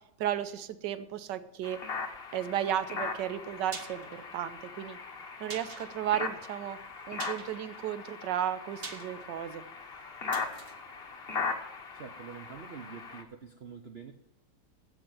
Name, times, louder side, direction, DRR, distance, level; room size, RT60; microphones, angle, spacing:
voice 1, 0.2-1.8 2.3-5.0 5.4-6.8 7.1-9.6, right 11 dB, 75° right, 12 dB, 1.4 m, -34 dB
sound 1, 1.6-13.2, left 4 dB, 35° left, 1.2 m, -39 dB
sound 2, 3.3-12.2 12.5-12.6, right 4 dB, 35° right, 1.2 m, -48 dB
voice 2, 11.9-14.1, right 6 dB, 50° right, 7 dB, 0.7 m, -46 dB
15.5 x 5.4 x 8.9 m, 0.81 s
omnidirectional pair, 2.0 m